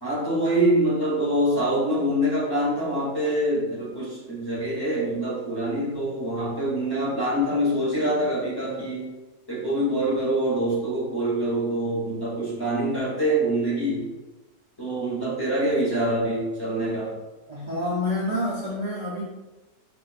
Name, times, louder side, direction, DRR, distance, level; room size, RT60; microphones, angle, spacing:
voice 1, 0.0-9.1 9.5-14.1 14.8-17.2, right 1 dB, 15° left, -8 dB, 0.9 m, -25 dB
voice 2, 17.5-19.2, left 1 dB, 70° right, -7 dB, 0.3 m, -28 dB
4.8 x 2.5 x 2.4 m, 1.1 s
omnidirectional pair, 1.7 m